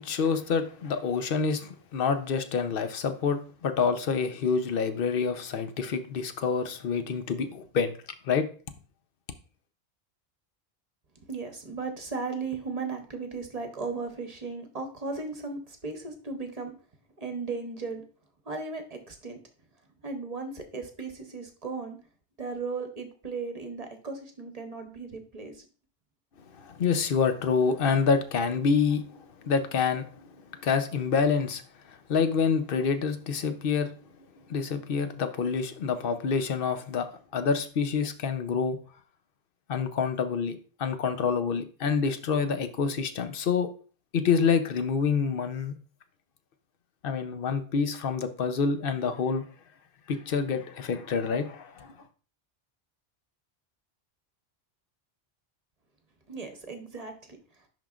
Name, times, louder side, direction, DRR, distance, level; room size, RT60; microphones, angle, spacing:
voice 1, 0.0-8.0 8.2-8.4 26.6-30.3 30.6-31.6 32.1-33.9 34.5-38.8 39.7-43.7 44.1-45.7 47.0-49.4 50.1-51.9, left 5 dB, 60° left, 9 dB, 0.9 m, -27 dB
voice 2, 11.3-16.7 17.2-18.0 18.4-19.4 20.0-22.0 22.4-25.7 56.3-57.4, right 4 dB, 40° right, 5 dB, 0.9 m, -36 dB
10.5 x 3.7 x 2.4 m, 0.39 s
omnidirectional pair, 1.1 m